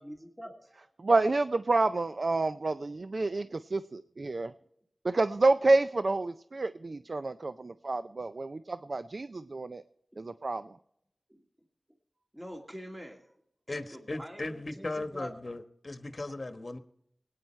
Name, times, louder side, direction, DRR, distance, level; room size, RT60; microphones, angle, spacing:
voice 1, 0.0-0.9 3.4-3.5 10.1-10.4 11.3-11.4 12.3-13.3 13.7-15.3, equal, 15° right, 1 dB, 2.3 m, -46 dB
voice 2, 1.0-4.5 5.0-9.8 10.2-10.8, right 3 dB, 60° right, 12 dB, 0.4 m, -28 dB
voice 3, 13.7-16.8, left 2 dB, 50° left, 9 dB, 1.1 m, -37 dB
21.0 x 9.3 x 4.3 m, 0.74 s
wide cardioid pair, 65°, 0 cm